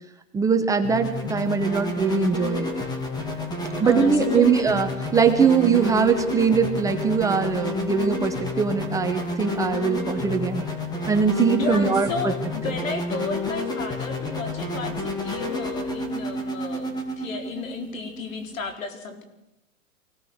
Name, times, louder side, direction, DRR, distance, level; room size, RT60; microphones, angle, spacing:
voice 1, 0.3-2.7 3.8-10.6 11.1-12.3 12.6-12.7, right 6 dB, 10° right, 6 dB, 0.8 m, -22 dB
sound 1, 0.8-18.6, left 2 dB, 10° left, 2.6 m, -30 dB
voice 2, 3.8-4.8 11.6-19.2, left 4 dB, 75° left, 6 dB, 4.5 m, -33 dB
24.5 x 17.5 x 6.4 m, 0.87 s
hypercardioid pair, 150°, 40 cm